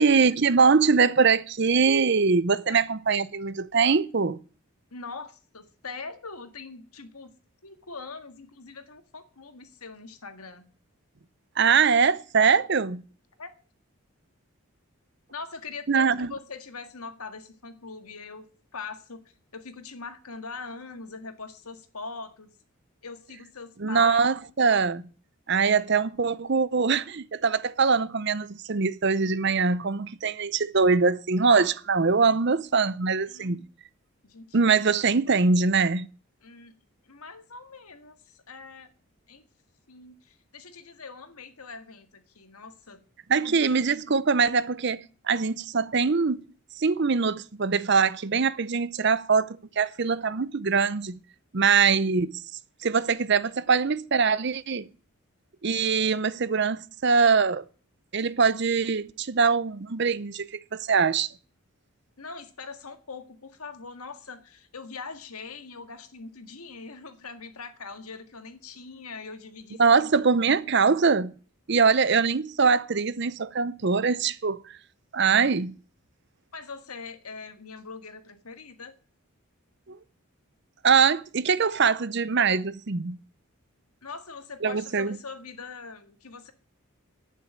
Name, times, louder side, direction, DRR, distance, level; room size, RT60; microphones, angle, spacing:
voice 1, 0.0-4.4 11.6-13.0 15.9-16.3 23.8-25.0 25.5-33.6 34.5-36.1 43.3-46.4 46.8-51.2 51.5-52.4 52.8-54.9 55.6-57.6 58.1-61.3 69.8-71.3 71.7-74.8 75.1-75.7 79.9-80.0 80.8-83.2 84.6-85.2, right 5 dB, 50° right, 0.6 m, -23 dB
voice 2, 4.9-7.3 7.6-10.7 13.4-13.5 15.3-18.4 18.7-19.2 19.5-22.5 23.0-24.2 33.3-33.7 34.2-34.6 36.4-36.7 37.0-38.9 39.3-39.4 39.9-43.0 43.3-43.8 62.2-69.8 76.5-78.9 84.0-86.5, left 4 dB, 85° left, 1.8 m, -42 dB
11.0 x 9.3 x 8.7 m
head